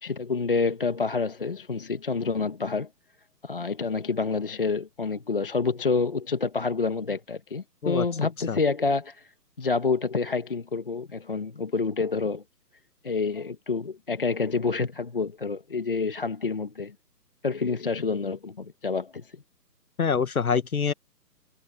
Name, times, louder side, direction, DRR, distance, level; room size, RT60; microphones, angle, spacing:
voice 1, 0.0-2.9 3.4-9.3 9.6-12.4 13.0-16.9 17.4-19.4, left 4 dB, 35° left, 1.2 m, -28 dB
voice 2, 20.0-20.9, left 6 dB, 60° left, 1.3 m, -25 dB
hypercardioid pair, 180°, 49 cm